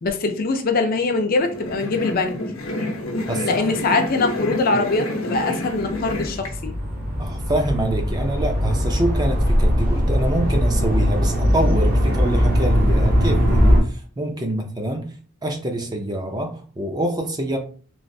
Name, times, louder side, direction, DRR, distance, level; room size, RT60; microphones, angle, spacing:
voice 1, 0.0-2.4 3.4-6.7, left 3 dB, 45° left, 5 dB, 0.4 m, -22 dB
sound 1, 1.4-6.5, left 1 dB, 75° left, 0.7 m, -28 dB
voice 2, 3.3-3.7 7.2-15.1 15.4-17.6, right 1 dB, 20° right, 3 dB, 0.4 m, -26 dB
sound 2, 5.8-13.8, equal, 45° right, 0.7 m, -20 dB
3.1 x 2.4 x 2.6 m, 0.41 s
head